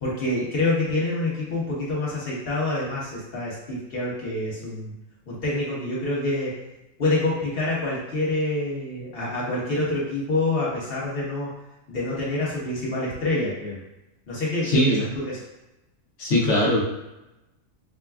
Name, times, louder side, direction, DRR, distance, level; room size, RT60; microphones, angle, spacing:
voice 1, 0.0-4.9 5.3-6.5 7.0-11.5 11.9-13.8 14.3-15.3, left 2 dB, 45° left, -6 dB, 1.3 m, -26 dB
voice 2, 14.6-15.0 16.2-16.8, left 1 dB, 65° left, -4 dB, 1.2 m, -20 dB
5.9 x 2.2 x 2.3 m, 0.98 s
omnidirectional pair, 1.4 m